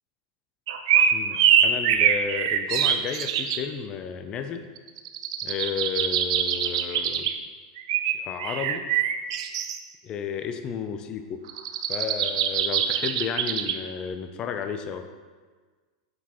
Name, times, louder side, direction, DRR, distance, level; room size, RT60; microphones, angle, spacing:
sound 1, 0.7-3.6 4.8-7.3 7.8-9.8 11.5-13.8, right 9 dB, 65° right, 0.5 m, -24 dB
voice 1, 1.1-4.6 5.4-7.3 8.1-8.9 10.0-11.2 11.9-15.0, left 7 dB, 30° left, 7 dB, 0.4 m, -32 dB
7.0 x 6.1 x 2.9 m, 1.4 s
supercardioid pair, 145°, 3 cm